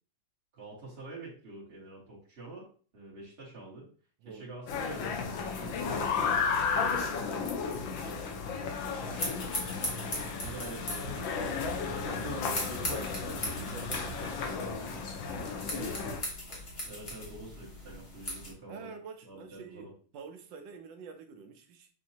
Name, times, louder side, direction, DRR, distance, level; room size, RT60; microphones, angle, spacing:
voice 1, 0.5-3.9 4.3-6.9 7.7-8.0 10.3-12.5 15.7-16.0 16.9-18.9 19.2-19.9, right 2 dB, 35° right, 1.7 m, -47 dB
sound 1, 4.7-16.2, left 5 dB, 85° left, 1.5 m, -33 dB
voice 2, 6.7-9.2 12.1-14.8 15.2-16.2 18.7-21.9, right 5 dB, 75° right, 1.3 m, -47 dB
sound 2, 9.2-18.5, left 1 dB, 35° left, 1.4 m, -40 dB
6.1 x 2.7 x 2.8 m
omnidirectional pair, 2.0 m